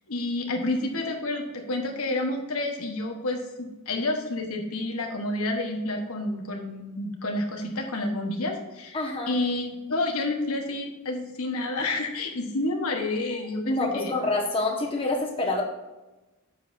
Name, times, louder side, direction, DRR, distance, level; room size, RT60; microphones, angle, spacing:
voice 1, 0.1-9.0 9.3-14.1, left 2 dB, 75° left, 2 dB, 1.3 m, -29 dB
voice 2, 8.9-9.4 13.6-15.6, left 2 dB, 25° left, -1 dB, 1.4 m, -27 dB
9.6 x 7.8 x 2.7 m, 1.1 s
head